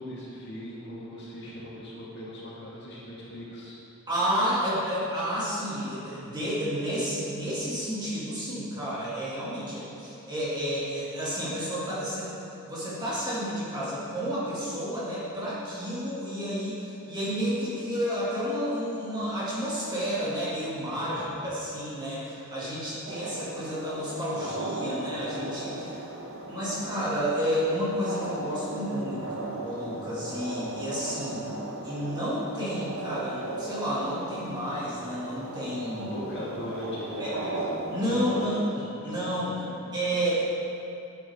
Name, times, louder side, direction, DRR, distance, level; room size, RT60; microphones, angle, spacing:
voice 1, 0.0-3.8 20.9-21.4 36.0-37.7 38.1-38.6 39.0-40.2, left 1 dB, 50° left, -6 dB, 1.9 m, -39 dB
voice 2, 4.1-12.3 12.6-21.2 21.4-26.0 26.5-31.5 31.8-36.1 37.2-37.3 37.9-39.5 39.9-40.6, equal, 20° right, -9 dB, 2.4 m, -31 dB
sound 1, 23.0-38.5, right 2 dB, 65° right, 1.3 m, -37 dB
10.5 x 8.3 x 3.6 m, 2.8 s
head